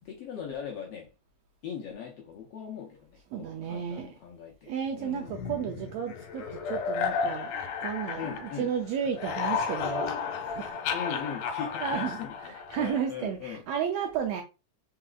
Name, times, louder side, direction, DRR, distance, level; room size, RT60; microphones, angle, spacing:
voice 1, 0.0-1.1 1.6-4.7 5.0-5.4 8.2-8.7 10.9-13.6, left 7 dB, 75° left, 1.5 m, -40 dB
voice 2, 3.3-4.1 4.7-10.1 10.4-10.8 11.8-12.2 12.7-14.4, right 8 dB, 80° right, 1.6 m, -33 dB
sound 1, 5.3-8.8 9.1-13.1, left 6 dB, 90° left, 2.3 m, -33 dB
4.7 x 4.1 x 2.3 m
omnidirectional pair, 3.5 m